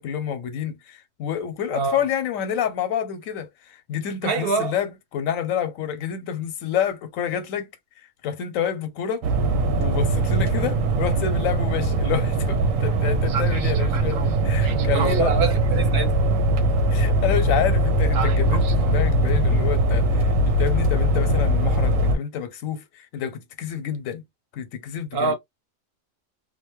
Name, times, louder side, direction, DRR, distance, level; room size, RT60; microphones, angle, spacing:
voice 1, 0.0-7.7 8.0-9.2 9.7-15.4 16.9-24.2 24.5-25.3, left 9 dB, 85° left, 1.0 m, -28 dB
voice 2, 4.2-4.7 14.9-16.2 25.1-25.3, right 4 dB, 55° right, 0.8 m, -24 dB
sound 1, 9.2-22.2, right 1 dB, 90° right, 1.0 m, -21 dB
2.7 x 2.2 x 2.9 m
omnidirectional pair, 1.4 m